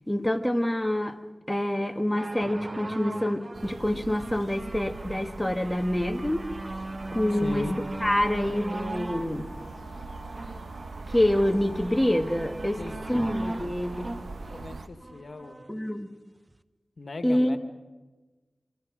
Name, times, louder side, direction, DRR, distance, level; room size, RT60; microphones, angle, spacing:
voice 1, 0.1-1.2 1.5-6.5 7.1-7.7 8.0-9.5 11.1-12.8 13.1-14.1 15.7-16.1 17.2-17.6, left 1 dB, 10° left, 5 dB, 1.9 m, -26 dB
sound 1, 2.2-15.7 16.5-16.6, right 2 dB, 35° right, 0.9 m, -38 dB
sound 2, 3.5-14.9, right 3 dB, 80° right, 1.1 m, -41 dB
voice 2, 7.3-7.8 12.8-13.3 14.5-15.6 17.0-17.6, left 2 dB, 70° left, 7 dB, 1.8 m, -38 dB
Wind instrument woodwind instrument, 7.6-15.1, left 2 dB, 50° left, 4.1 m, -51 dB
26.0 x 26.0 x 5.2 m, 1.2 s
cardioid pair, 40°, 0 cm